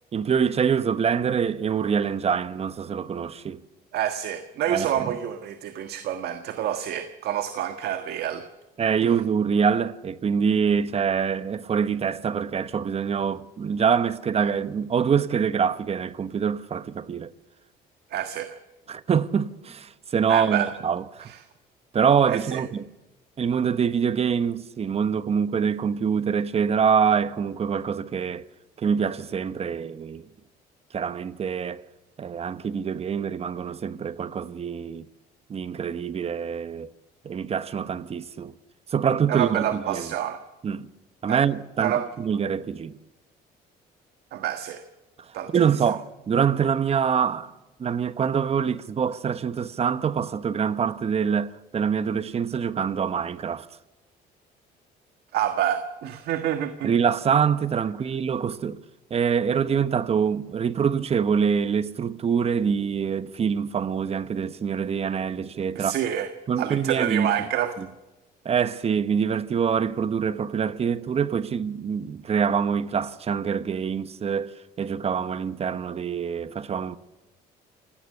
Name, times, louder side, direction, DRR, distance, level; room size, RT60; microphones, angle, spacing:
voice 1, 0.1-3.6 4.7-5.1 8.8-17.3 18.9-21.3 21.9-22.8 23.4-28.5 28.8-30.2 30.9-31.8 32.2-35.0 35.5-36.9 37.2-38.5 38.9-40.1 40.6-40.9 41.2-42.9 45.5-47.5 47.8-53.7 56.8-58.8 59.1-65.9 66.5-67.4 67.8-67.9 68.4-77.0, right 7 dB, 35° right, 1.1 m, -25 dB
voice 2, 3.9-8.4 9.0-9.1 18.1-18.6 20.3-20.7 21.3-21.4 22.3-22.6 39.3-40.4 41.3-41.4 41.8-42.1 44.3-44.8 45.3-45.5 55.3-56.9 65.7-66.3 66.6-67.7, right 10 dB, 70° right, 1.5 m, -28 dB
28.0 x 17.5 x 6.7 m
cardioid pair, 110°, 17 cm